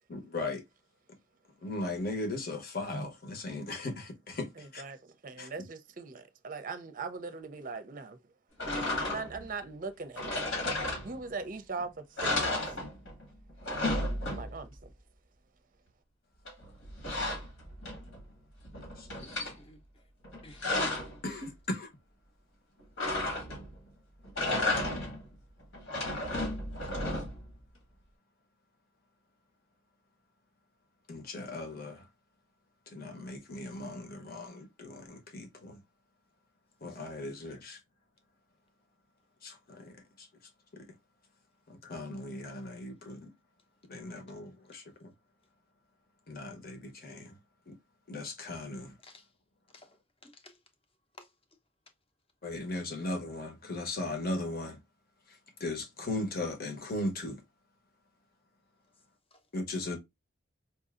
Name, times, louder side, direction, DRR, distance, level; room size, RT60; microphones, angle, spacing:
voice 1, 0.1-0.6 1.6-4.8 5.4-5.5 19.0-19.1 21.2-21.9 31.1-32.0 32.9-35.8 36.8-37.8 39.4-40.3 41.8-43.3 43.9-44.8 46.3-47.3 47.7-47.8 48.1-48.9 52.4-54.8 55.6-57.4 59.5-60.0, left 2 dB, 45° left, 1.1 m, -37 dB
voice 2, 4.6-8.2 9.0-10.3 10.8-12.7 14.3-14.9, right 4 dB, 40° right, 0.5 m, -40 dB
sound 1, 8.6-9.5 10.1-11.4 11.8-11.9 12.2-13.2 13.5-14.7 16.4-18.2 18.6-19.5 20.2-21.2 23.0-23.8 24.2-25.3 25.7-27.5, left 2 dB, 70° left, 1.8 m, -33 dB
voice 3, 19.1-19.8 20.4-20.7 49.0-49.3 49.7-50.0 50.2-50.6 51.2-51.3 59.3-59.4, left 2 dB, 30° left, 0.8 m, -54 dB
4.5 x 2.7 x 2.4 m
head